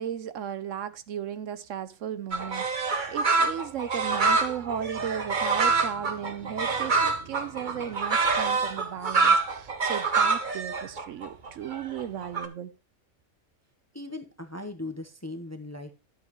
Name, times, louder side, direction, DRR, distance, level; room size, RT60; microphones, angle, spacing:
voice 1, 0.0-12.7, right 9 dB, 65° right, 0.9 m, -35 dB
sound 1, 2.3-12.5, right 4 dB, 35° right, 1.1 m, -26 dB
voice 2, 13.9-15.9, left 2 dB, 15° left, 0.8 m, -38 dB
11.5 x 8.0 x 3.1 m
omnidirectional pair, 1.5 m